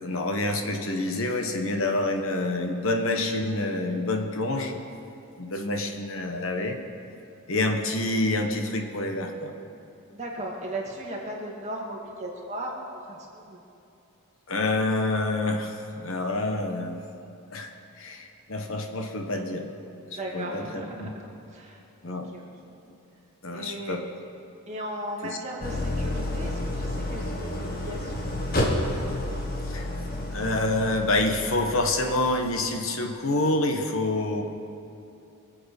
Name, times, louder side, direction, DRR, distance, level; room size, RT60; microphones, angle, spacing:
voice 1, 0.0-4.8 5.4-6.8 7.5-9.5 14.5-17.0 17.5-17.7 18.0-19.7 20.1-21.1 22.0-22.3 23.4-24.0 25.2-25.4 29.7-29.9 30.3-34.4, left 2 dB, 65° left, 4 dB, 1.2 m, -27 dB
voice 2, 10.1-13.6 20.1-22.7 23.5-24.0 24.7-28.2, right 1 dB, 30° right, -2 dB, 2.1 m, -37 dB
Idling, 25.6-32.7, left 1 dB, 45° left, 1.6 m, -30 dB
23.5 x 7.8 x 5.4 m, 2.8 s
head